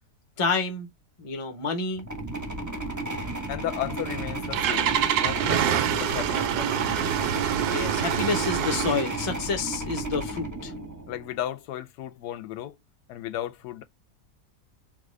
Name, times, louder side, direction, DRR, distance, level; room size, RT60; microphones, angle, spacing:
voice 1, 0.4-0.9 1.2-2.1 7.7-10.7, left 4 dB, 30° left, 0.7 m, -28 dB
sound 1, 2.0-11.3, right 2 dB, 20° right, 0.5 m, -33 dB
voice 2, 3.5-7.1 11.1-12.8 13.1-13.8, left 12 dB, 85° left, 1.2 m, -35 dB
Engine starting, 4.0-9.2, right 10 dB, 80° right, 1.1 m, -26 dB
3.7 x 2.4 x 3.1 m
omnidirectional pair, 1.7 m